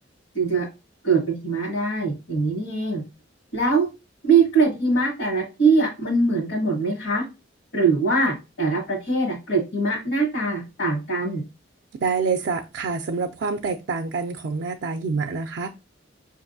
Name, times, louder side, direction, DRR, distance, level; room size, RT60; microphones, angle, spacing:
voice 1, 0.3-0.7 1.0-3.0 3.5-3.9 4.2-7.2 7.7-11.4, right 3 dB, 65° left, 1.3 m, -22 dB
voice 2, 12.0-15.7, right 4 dB, 65° right, 0.4 m, -26 dB
5.2 x 2.5 x 2.6 m
head